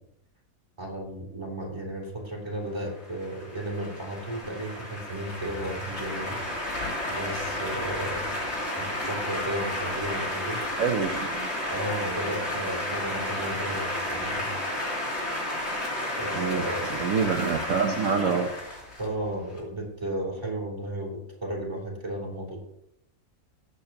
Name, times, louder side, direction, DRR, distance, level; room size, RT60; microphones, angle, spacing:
voice 1, 0.8-6.4 7.1-8.3 8.8-10.6 11.6-14.5 16.2-17.0 19.0-22.6, right 1 dB, 20° right, -3 dB, 3.6 m, -34 dB
sound 1, 2.9-19.6, left 1 dB, 50° left, 3.3 m, -32 dB
voice 2, 10.8-11.5 16.3-16.6 17.0-18.5, right 5 dB, 70° right, 3 dB, 1.3 m, -26 dB
20.0 x 8.2 x 2.9 m, 0.78 s
omnidirectional pair, 1.5 m